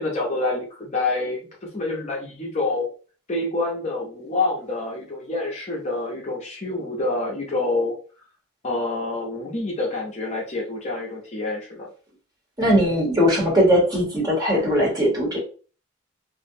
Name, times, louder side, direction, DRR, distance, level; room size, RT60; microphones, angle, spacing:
voice 1, 0.0-2.9 3.3-7.9 8.6-11.9, left 2 dB, 35° left, -2 dB, 0.5 m, -27 dB
voice 2, 12.6-15.4, equal, 20° right, -3 dB, 0.8 m, -19 dB
2.5 x 2.1 x 2.6 m, 0.38 s
head